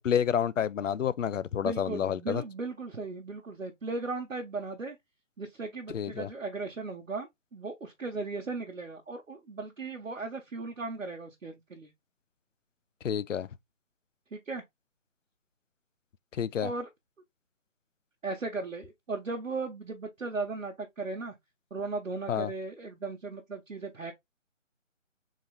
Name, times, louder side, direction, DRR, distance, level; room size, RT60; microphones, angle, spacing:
voice 1, 0.0-2.4 5.9-6.3 13.0-13.5 16.4-16.7 22.3-22.5, left 8 dB, 75° left, 0.5 m, -29 dB
voice 2, 1.6-5.0 5.4-11.9 14.3-14.6 16.6-16.9 18.2-21.3 21.7-24.1, right 3 dB, 75° right, 1.1 m, -37 dB
3.7 x 3.0 x 3.3 m
figure-of-eight pair, 155°, 39 cm